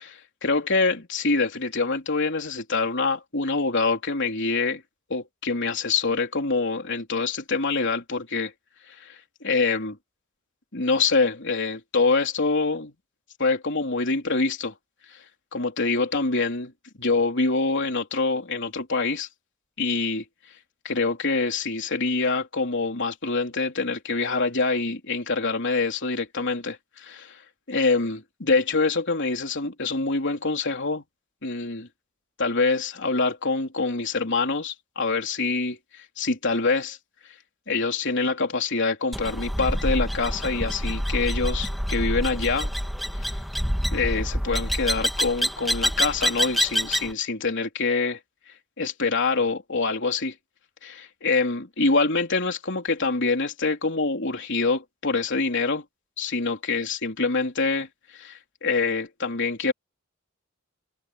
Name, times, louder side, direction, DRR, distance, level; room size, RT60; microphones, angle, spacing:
voice 1, 0.0-4.8 5.1-8.5 9.0-9.2 9.4-10.0 10.7-12.9 13.4-14.7 15.5-16.7 17.0-19.3 19.8-20.2 20.8-27.4 27.7-31.0 31.4-31.9 32.4-35.8 36.2-37.0 37.7-42.7 43.9-48.2 48.8-50.3 50.8-55.8 56.2-57.9 58.1-59.7, left 3 dB, 60° left, 3.8 m, -25 dB
sound 1, 39.1-47.1, equal, ahead, 2.1 m, -27 dB
head